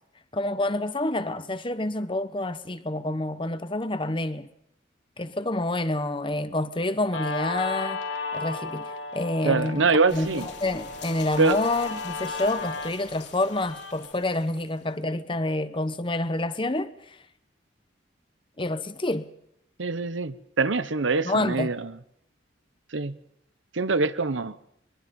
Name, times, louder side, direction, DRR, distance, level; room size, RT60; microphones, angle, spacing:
voice 1, 0.3-4.5 5.2-8.0 8.3-17.2 18.6-19.3 21.2-21.7, left 2 dB, 25° left, 1.1 m, -28 dB
Guitar, 7.1-14.1, left 4 dB, 80° left, 3.5 m, -35 dB
voice 2, 9.4-10.5 11.4-11.6 19.8-21.9 22.9-23.1 23.7-24.6, right 4 dB, 85° right, 1.0 m, -24 dB
sound 1, 10.1-14.9, left 5 dB, 60° left, 4.2 m, -46 dB
22.5 x 22.5 x 5.4 m
head